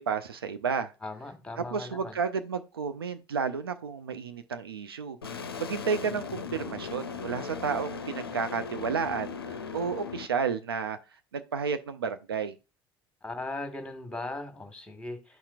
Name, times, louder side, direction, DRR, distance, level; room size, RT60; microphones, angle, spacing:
voice 1, 0.0-0.9 1.6-11.0 11.3-12.5, right 6 dB, 80° right, 0.4 m, -32 dB
voice 2, 1.0-2.2 13.2-15.4, left 2 dB, 10° left, 1.3 m, -38 dB
sound 1, 5.2-10.3, left 6 dB, 85° left, 0.4 m, -38 dB
11.5 x 4.3 x 2.3 m
figure-of-eight pair, 60°, 12 cm